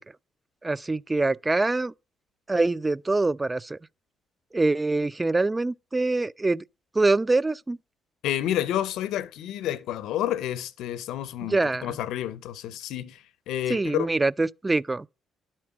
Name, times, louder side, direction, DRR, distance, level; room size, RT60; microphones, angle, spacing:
voice 1, 0.6-1.9 2.5-3.8 4.5-6.6 6.9-7.8 11.4-12.0 13.7-15.1, right 2 dB, 25° right, 0.4 m, -24 dB
voice 2, 8.2-14.1, left 12 dB, 75° left, 0.7 m, -30 dB
11.0 x 4.4 x 6.0 m
hypercardioid pair, 55°, 0 cm